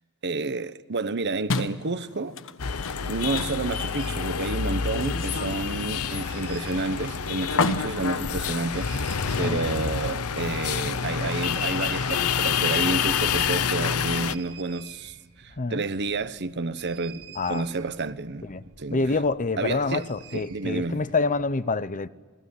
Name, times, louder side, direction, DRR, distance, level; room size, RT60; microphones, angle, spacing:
voice 1, 0.2-2.4 3.1-18.5 18.8-19.2 19.6-20.1 20.3-21.0, right 3 dB, 50° right, 1.0 m, -30 dB
sound 1, 1.5-9.2, left 3 dB, 65° left, 1.3 m, -33 dB
sound 2, 2.6-14.4, left 6 dB, 85° left, 0.9 m, -28 dB
sound 3, 3.7-4.4 5.9-7.1 8.7-9.8 11.4-12.7 13.0-13.1 13.2-21.5, right 7 dB, 85° right, 3.8 m, -49 dB
voice 2, 18.9-22.1, left 3 dB, 35° left, 0.8 m, -27 dB
28.0 x 20.0 x 9.9 m
head